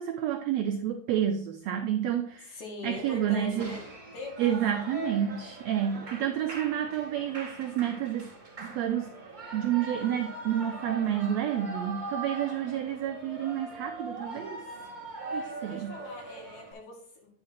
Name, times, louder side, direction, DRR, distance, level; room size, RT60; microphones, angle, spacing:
voice 1, 0.0-3.8 4.4-8.3 8.6-9.1 9.5-14.6 15.3-16.0, right 10 dB, 85° right, 5 dB, 1.5 m, -30 dB
voice 2, 2.5-3.8 4.1-4.9 15.3-17.3, left 2 dB, 60° left, -1 dB, 3.4 m, -43 dB
Shout / Cheering, 2.9-16.7, right 2 dB, 30° right, 0.9 m, -41 dB
9.5 x 4.9 x 4.3 m, 0.62 s
omnidirectional pair, 3.8 m